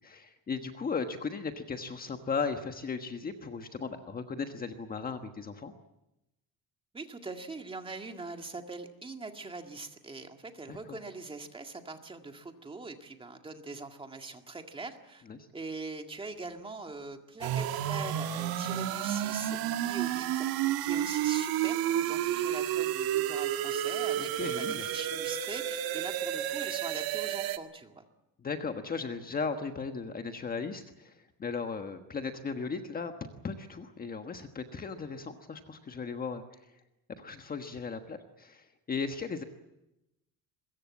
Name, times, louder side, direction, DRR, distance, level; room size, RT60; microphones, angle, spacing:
voice 1, 0.0-5.7 10.7-11.0 15.3-15.5 24.2-24.8 28.4-33.1 33.4-36.4 37.2-39.4, left 5 dB, 25° left, 6 dB, 1.4 m, -36 dB
voice 2, 6.9-15.2 15.5-28.0, right 3 dB, 15° right, 5 dB, 1.9 m, -42 dB
sound 1, 17.4-27.6, right 11 dB, 70° right, 1.8 m, -31 dB
23.5 x 22.0 x 8.5 m, 0.91 s
cardioid pair, 175°, 37 cm